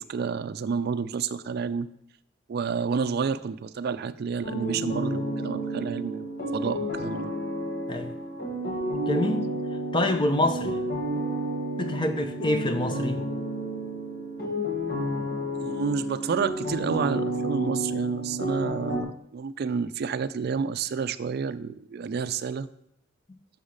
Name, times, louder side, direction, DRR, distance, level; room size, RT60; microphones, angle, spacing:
voice 1, 0.0-1.9 2.5-7.3 15.6-22.7, right 5 dB, 55° right, 13 dB, 0.3 m, -30 dB
sound 1, 4.4-19.0, right 1 dB, 50° left, 1.6 m, -31 dB
voice 2, 9.1-9.5 9.9-10.7 11.8-13.2, left 1 dB, 25° left, 7 dB, 0.7 m, -26 dB
7.0 x 5.5 x 6.4 m, 0.76 s
head